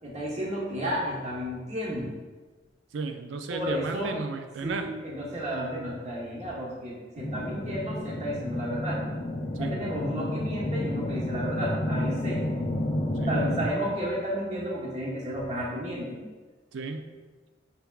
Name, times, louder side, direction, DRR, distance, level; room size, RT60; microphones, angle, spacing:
voice 1, 0.0-2.1 3.5-4.2 4.6-9.0 9.6-12.4 13.3-16.3, equal, 40° right, -5 dB, 1.0 m, -32 dB
voice 2, 2.9-4.9 9.6-9.7 13.2-13.4 16.7-17.1, right 4 dB, 85° right, 6 dB, 0.4 m, -34 dB
sound 1, 7.2-13.7, left 1 dB, 35° left, 0.4 m, -30 dB
5.6 x 3.4 x 2.3 m, 1.3 s
head